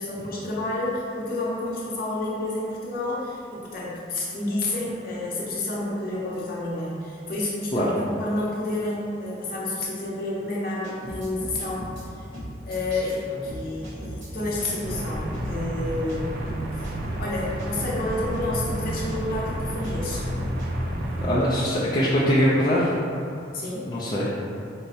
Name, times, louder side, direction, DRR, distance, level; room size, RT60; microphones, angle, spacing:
voice 1, 0.0-11.8 12.7-16.3 16.7-16.9 17.2-20.2 23.5-23.9, left 2 dB, 50° left, -5 dB, 0.7 m, -30 dB
sound 1, 10.8-12.1 12.3-13.2 13.5-15.0 15.3-15.5 16.1-16.2 16.5-18.0 18.3-18.5 19.1-19.2 19.5-20.7, equal, 65° right, 0.9 m, -37 dB
sound 2, 14.8-21.3, right 1 dB, 50° right, 0.4 m, -30 dB
voice 2, 21.2-23.0 23.8-24.3, equal, 20° left, -8 dB, 0.3 m, -22 dB
4.5 x 2.1 x 2.6 m, 2.5 s
head